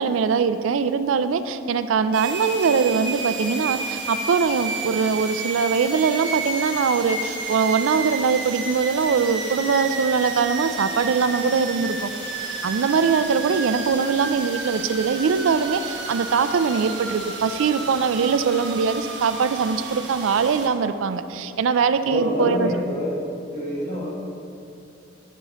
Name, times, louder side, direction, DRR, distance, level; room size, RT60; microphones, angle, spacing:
voice 1, 0.0-12.1 12.6-22.7, right 5 dB, 85° right, 11 dB, 0.4 m, -22 dB
sound 1, 2.1-20.7, right 3 dB, 60° right, 1.1 m, -31 dB
voice 2, 22.0-23.1 23.5-24.1, equal, 30° left, -9 dB, 1.1 m, -26 dB
11.0 x 6.9 x 3.0 m, 2.6 s
head